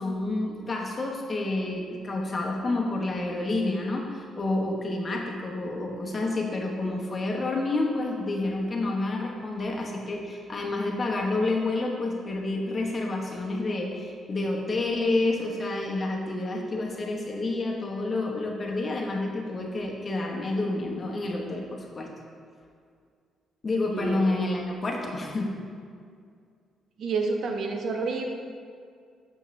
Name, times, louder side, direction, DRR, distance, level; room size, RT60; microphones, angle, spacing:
voice 1, 0.0-22.1 23.6-25.6, left 2 dB, 35° left, 0 dB, 1.1 m, -29 dB
voice 2, 23.9-24.2 27.0-28.2, right 4 dB, 65° right, 3 dB, 0.8 m, -29 dB
6.6 x 6.4 x 3.2 m, 2.2 s
cardioid pair, 90°, 0 cm